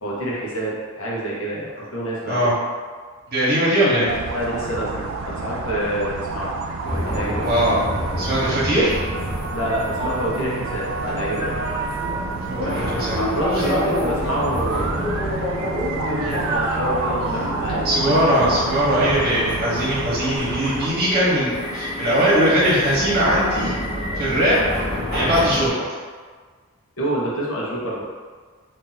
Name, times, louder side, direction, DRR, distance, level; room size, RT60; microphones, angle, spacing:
voice 1, 0.0-2.5 4.3-6.6 7.0-7.5 9.5-11.5 13.2-14.9 15.9-17.8 27.0-28.0, equal, 75° left, -5 dB, 0.9 m, -27 dB
voice 2, 3.3-4.1 7.4-7.8 8.2-8.9 12.5-13.2 16.2-16.3 17.8-23.8 24.2-24.6 25.1-25.8, equal, 50° right, -8 dB, 1.0 m, -20 dB
sound 1, 4.1-20.9, right 4 dB, 65° right, 0.3 m, -29 dB
sound 2, 6.8-25.7, left 1 dB, 20° left, 1.1 m, -28 dB
2.7 x 2.6 x 3.9 m, 1.5 s
head